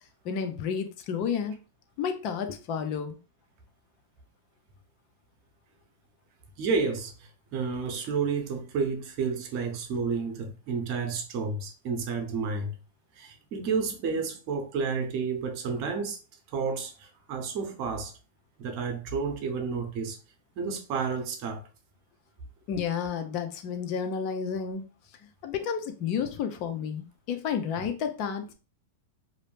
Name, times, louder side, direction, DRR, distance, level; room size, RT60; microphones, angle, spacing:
voice 1, 0.2-1.6 2.0-3.2 22.7-24.8 25.4-28.5, left 7 dB, 45° left, 0.5 m, -31 dB
voice 2, 6.6-7.1 7.5-12.7 13.2-16.2 16.5-18.1 18.6-20.2 20.6-21.6 27.8-27.9, right 5 dB, 50° right, 0.7 m, -30 dB
2.6 x 2.0 x 3.1 m
hypercardioid pair, 120°, 0 cm